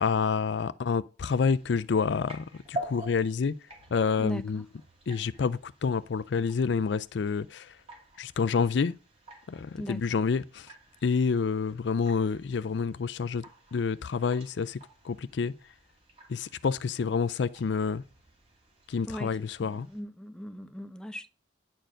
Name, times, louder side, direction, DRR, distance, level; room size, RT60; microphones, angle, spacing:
voice 1, 0.0-3.5 3.9-4.7 5.1-7.8 8.2-8.9 9.5-10.7 11.0-13.4 13.7-14.8 15.0-15.5 16.3-18.0 18.9-19.9, left 5 dB, 65° left, 0.4 m, -28 dB
sound 1, 1.3-20.0, right 1 dB, 30° right, 2.6 m, -48 dB
voice 2, 19.6-21.3, equal, 5° left, 0.6 m, -38 dB
10.0 x 4.5 x 6.3 m
head